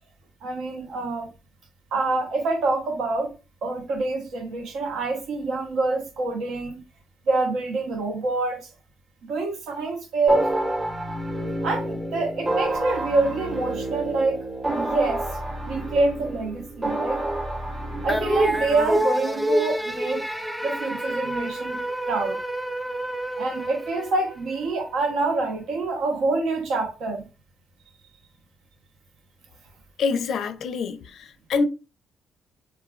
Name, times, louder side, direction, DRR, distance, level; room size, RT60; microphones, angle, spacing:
voice 1, 0.4-1.3 1.9-3.3 3.6-6.8 7.3-8.7 9.2-10.5 11.6-14.4 14.7-15.2 15.7-17.2 18.0-20.3 20.6-22.4 23.4-27.3, right 3 dB, 80° right, 0.8 m, -26 dB
sound 1, 10.3-19.0, right 1 dB, 25° right, 0.8 m, -29 dB
sound 2, 18.1-24.6, right 1 dB, 5° right, 0.4 m, -27 dB
voice 2, 30.0-31.6, left 4 dB, 70° left, 0.4 m, -26 dB
3.1 x 2.3 x 2.4 m
cardioid pair, 90°, 0 cm